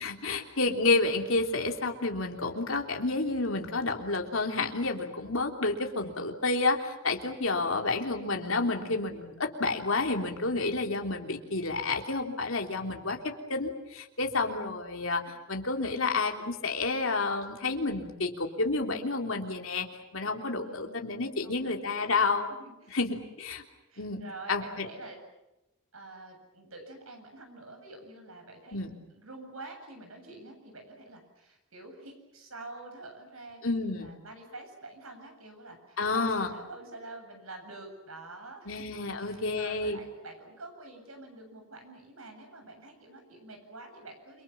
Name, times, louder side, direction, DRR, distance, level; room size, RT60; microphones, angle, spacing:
voice 1, 0.0-19.9 20.1-22.5 22.9-23.6 24.0-24.2 24.5-24.9 28.7-28.9 33.6-34.1 36.0-36.5 38.7-40.0, left 3 dB, 70° left, 3 dB, 3.3 m, -30 dB
voice 2, 7.5-8.0 20.6-22.3 22.6-23.0 23.9-25.2 25.9-38.9 39.2-44.4, right 2 dB, 80° right, 4 dB, 7.8 m, -47 dB
29.5 x 24.0 x 7.4 m, 0.95 s
head